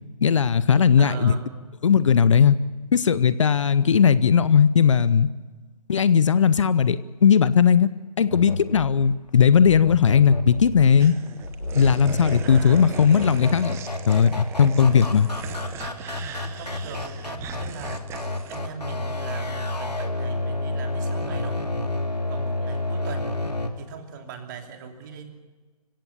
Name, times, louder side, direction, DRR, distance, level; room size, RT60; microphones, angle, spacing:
voice 1, 0.2-1.3 1.8-2.6 2.9-5.3 5.9-7.9 8.2-11.1 11.7-13.8 14.1-15.3, left 7 dB, 50° left, 17 dB, 0.8 m, -18 dB
voice 2, 1.0-1.6 12.4-12.8 14.9-15.6 16.4-18.0 18.5-21.6 22.3-23.3 23.8-25.3, right 7 dB, 30° right, 4 dB, 2.9 m, -39 dB
sound 1, 8.3-23.7, left 2 dB, 85° left, 2.8 m, -30 dB
sound 2, 11.0-18.6, right 8 dB, 15° right, 1.1 m, -39 dB
26.5 x 17.0 x 7.0 m, 1.4 s
figure-of-eight pair, 140°, 20 cm